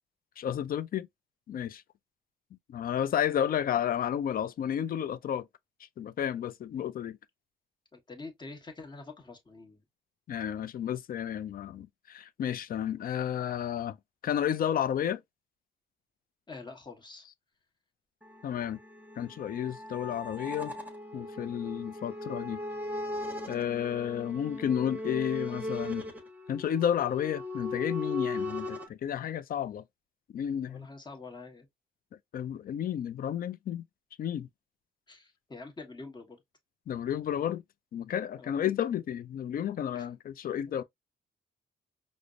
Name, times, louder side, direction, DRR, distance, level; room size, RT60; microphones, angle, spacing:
voice 1, 0.4-1.1 1.5-1.8 2.7-5.5 6.0-7.2 10.3-14.0 14.2-15.2 18.4-18.8 19.2-20.7 21.1-22.6 23.5-26.1 26.5-29.8 30.3-30.9 32.3-33.8 34.2-34.5 36.9-37.6 37.9-40.8, left 9 dB, 45° left, 0.4 m, -32 dB
voice 2, 7.9-9.8 16.5-17.3 30.7-31.7 35.1-36.4 38.4-38.6, left 3 dB, 20° left, 1.2 m, -46 dB
sound 1, 18.2-28.9, left 2 dB, 10° right, 1.0 m, -38 dB
4.9 x 2.0 x 2.4 m
cardioid pair, 90°, 20 cm